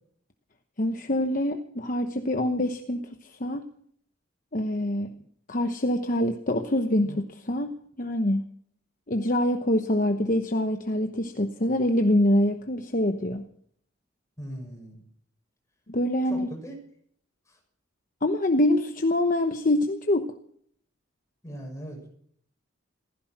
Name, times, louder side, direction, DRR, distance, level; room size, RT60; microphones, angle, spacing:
voice 1, 0.8-3.7 4.5-5.1 5.5-8.4 9.1-13.4 15.9-16.5 18.2-20.3, left 1 dB, 40° left, 6 dB, 1.0 m, -25 dB
voice 2, 14.4-15.0 16.2-16.8 17.5-17.6 21.4-22.1, equal, 15° left, 1 dB, 6.5 m, -39 dB
16.0 x 15.0 x 6.0 m, 0.62 s
head